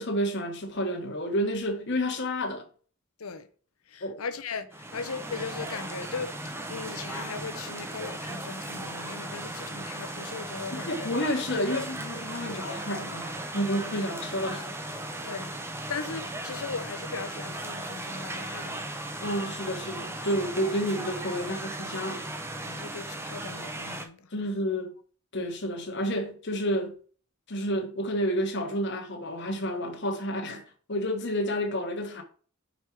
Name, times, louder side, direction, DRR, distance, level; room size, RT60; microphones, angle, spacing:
voice 1, 0.0-2.7 4.0-4.2 10.7-14.9 19.2-22.3 24.3-24.9 25.3-26.9 27.5-30.6 30.9-32.2, equal, 55° left, 1.2 m, -30 dB
voice 2, 3.9-11.1 11.7-11.9 12.5-12.8 15.2-18.9 22.7-24.3, left 5 dB, 85° left, 0.8 m, -38 dB
sound 1, 4.7-24.1, right 1 dB, 10° right, 0.6 m, -37 dB
5.3 x 4.6 x 4.6 m
head